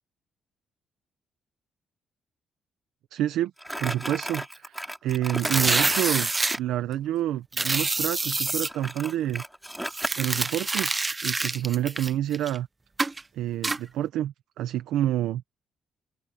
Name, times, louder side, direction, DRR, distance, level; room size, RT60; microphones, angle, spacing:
voice 1, 3.1-3.5 3.8-6.3 6.6-9.4 10.2-11.0 11.2-12.7 13.3-15.4, right 12 dB, 85° right, 0.9 m, -28 dB
Crumpling crinkling, 3.6-6.7 8.3-10.5, equal, 5° right, 4.7 m, -35 dB
sound 1, 5.4-6.6 7.5-8.7 9.9-12.6 13.0-13.2 13.6-13.8, right 3 dB, 20° right, 0.7 m, -26 dB
open air
cardioid pair, 90°, 0 cm